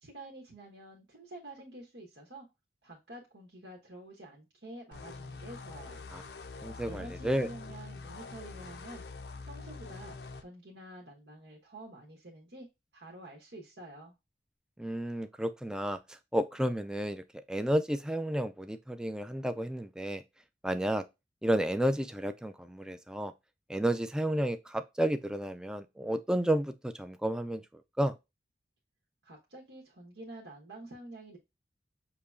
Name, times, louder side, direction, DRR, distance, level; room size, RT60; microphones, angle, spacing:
voice 1, 0.0-2.5 2.8-6.1 6.9-9.0 9.4-12.7 12.9-14.1 29.2-31.4, right 1 dB, 75° right, 1.2 m, -48 dB
sound 1, 4.9-10.4, left 3 dB, 65° left, 0.5 m, -45 dB
voice 2, 6.6-7.5 14.8-20.2 20.6-21.0 21.4-23.3 23.7-28.1, right 1 dB, 5° right, 0.3 m, -32 dB
6.7 x 2.9 x 2.3 m
head